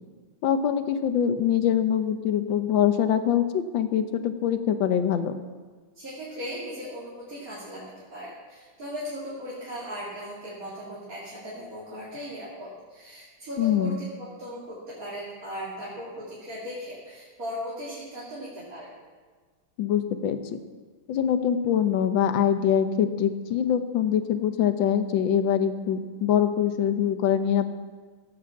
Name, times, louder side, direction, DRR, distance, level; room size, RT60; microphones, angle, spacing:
voice 1, 0.4-5.3 13.6-14.0 19.8-20.4 21.1-27.7, left 9 dB, 75° left, 9 dB, 1.7 m, -24 dB
voice 2, 5.9-7.8 8.1-13.9 14.2-18.9, equal, 45° right, -7 dB, 3.0 m, -38 dB
15.5 x 8.7 x 7.2 m, 1.5 s
omnidirectional pair, 2.2 m